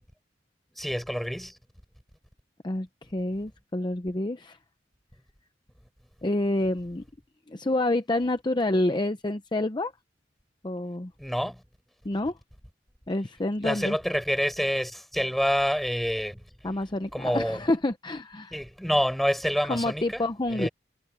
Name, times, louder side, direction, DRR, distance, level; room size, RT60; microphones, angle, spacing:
voice 1, 0.8-1.6 11.2-11.6 13.6-16.4 17.1-17.6 18.5-20.2 20.5-20.7, equal, ahead, 6.8 m, -27 dB
voice 2, 2.6-4.6 6.2-7.0 7.5-9.9 10.6-11.1 12.0-12.3 13.1-14.0 16.6-18.6 19.7-20.7, left 1 dB, 25° left, 0.7 m, -28 dB
head